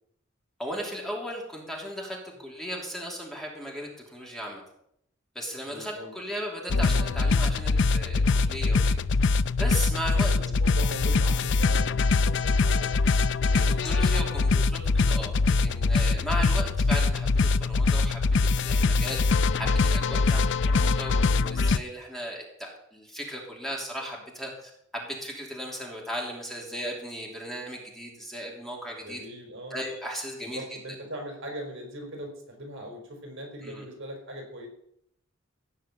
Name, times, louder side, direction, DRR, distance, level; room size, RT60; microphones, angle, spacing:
voice 1, 0.6-4.6 5.3-9.0 9.6-10.3 13.5-29.2 29.7-30.6 33.6-33.9, equal, ahead, -2 dB, 3.1 m, -36 dB
voice 2, 5.6-6.1 10.2-12.0 12.2-13.1 13.4-13.9 20.2-20.5 29.0-29.8 30.4-34.7, right 1 dB, 65° right, 2 dB, 4.5 m, -40 dB
sound 1, 6.7-21.8, left 4 dB, 60° left, 0.5 m, -23 dB
17.0 x 5.6 x 8.8 m, 0.74 s
head